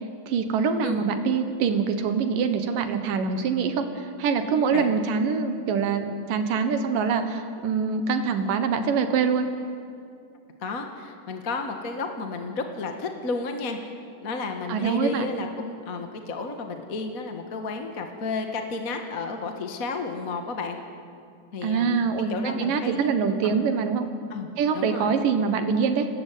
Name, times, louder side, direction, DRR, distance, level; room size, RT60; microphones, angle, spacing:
voice 1, 0.3-9.5 14.7-15.3 21.6-24.1 24.6-26.1, right 5 dB, 80° right, 8 dB, 3.0 m, -24 dB
voice 2, 10.6-14.0 14.2-20.8 21.5-22.0 22.3-23.6 24.3-25.1, left 3 dB, 35° left, 4 dB, 1.4 m, -32 dB
25.5 x 19.0 x 9.3 m, 2.4 s
omnidirectional pair, 3.8 m